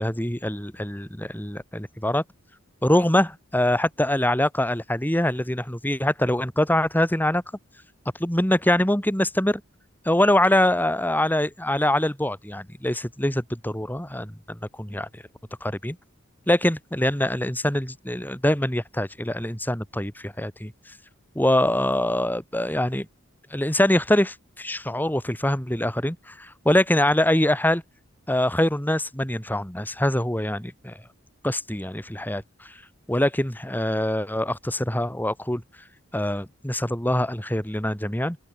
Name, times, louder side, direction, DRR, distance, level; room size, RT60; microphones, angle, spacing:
voice 1, 0.0-2.2 2.8-7.4 8.2-9.6 10.1-15.1 15.6-16.0 16.5-20.7 21.4-23.1 23.5-27.8 28.3-31.0 31.4-32.7 33.1-35.6 36.1-38.4, left 1 dB, 10° left, 3.6 m, -24 dB
open air
head